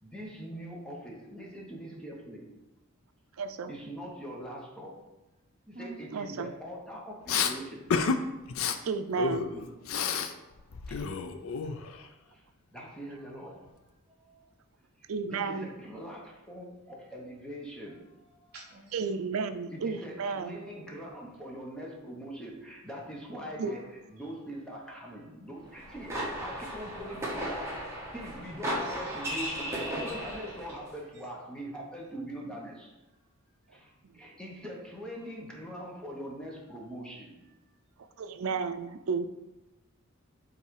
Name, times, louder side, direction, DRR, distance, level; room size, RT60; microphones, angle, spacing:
voice 1, 0.0-2.5 3.7-5.0 5.7-7.9 9.5-11.1 11.7-12.4 12.7-13.7 14.2-14.5 15.0-18.5 19.7-23.8 24.1-32.9 33.7-37.5, equal, 5° left, -2 dB, 1.0 m, -43 dB
voice 2, 3.4-3.7 6.1-6.5 8.8-9.6 15.1-15.7 18.9-20.6 23.6-23.7 34.0-34.1 38.2-39.3, right 5 dB, 80° right, 10 dB, 0.4 m, -32 dB
voice 3, 5.7-6.1 18.5-19.1 23.3-23.8 24.2-24.3 28.8-29.5 32.4-32.6 38.5-38.6, right 3 dB, 50° right, -2 dB, 0.7 m, -49 dB
Respiratory sounds, 7.3-7.5 7.9-8.2 8.5-8.8 9.2-10.3 10.6-12.0, left 6 dB, 75° left, 0.5 m, -30 dB
sound 1, 25.7-30.7, equal, 15° right, 1.3 m, -35 dB
5.5 x 3.9 x 4.8 m, 1.0 s
head